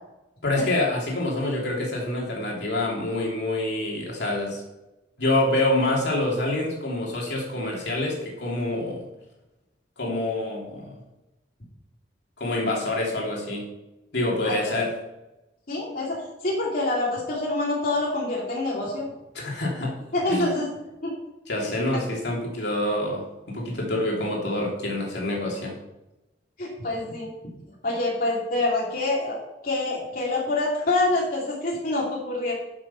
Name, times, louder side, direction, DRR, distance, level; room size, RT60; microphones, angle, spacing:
voice 1, 0.4-4.6 5.2-9.0 10.0-11.0 12.4-13.7 14.1-14.9 19.3-19.9 20.3-20.5 21.5-25.7, left 1 dB, 70° left, -2 dB, 3.1 m, -26 dB
voice 2, 14.4-14.7 15.7-19.1 20.1-20.7 21.0-21.1 21.6-22.0 26.6-27.3 27.8-29.4 29.6-32.5, left 2 dB, 55° left, -4 dB, 2.7 m, -26 dB
11.5 x 6.5 x 5.6 m, 0.98 s
head